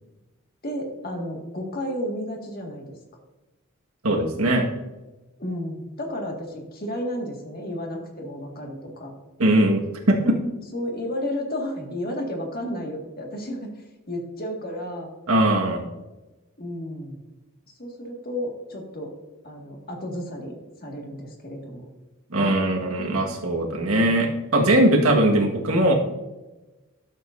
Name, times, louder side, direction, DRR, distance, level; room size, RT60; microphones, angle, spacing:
voice 1, 0.6-3.0 5.4-9.1 10.2-10.4 10.7-15.1 16.6-17.2 17.8-19.1 19.4-21.9 22.4-22.6 23.0-23.3 23.7-24.1, left 1 dB, 45° left, 1 dB, 1.8 m, -32 dB
voice 2, 4.0-4.7 9.4-10.3 15.3-15.8 22.3-25.9, right 1 dB, 85° right, 2 dB, 1.6 m, -20 dB
12.5 x 7.5 x 2.6 m, 1.1 s
head